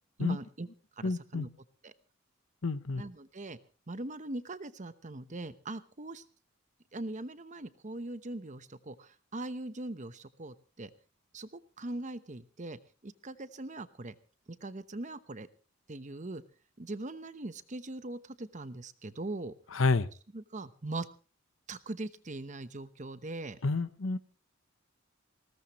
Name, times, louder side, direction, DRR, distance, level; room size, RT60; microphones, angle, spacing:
voice 1, 0.2-0.7 1.0-1.5 1.8-1.9 2.9-3.6 3.9-6.2 6.9-10.9 11.3-11.5 11.8-14.1 14.6-15.5 15.9-16.4 16.8-19.5 20.3-21.0 21.7-23.6, right 2 dB, 40° right, 12 dB, 1.0 m, -41 dB
voice 2, 1.0-1.5 2.6-3.0 19.7-20.1 23.6-24.2, left 3 dB, 75° left, 14 dB, 0.9 m, -29 dB
20.5 x 17.5 x 3.1 m, 0.36 s
head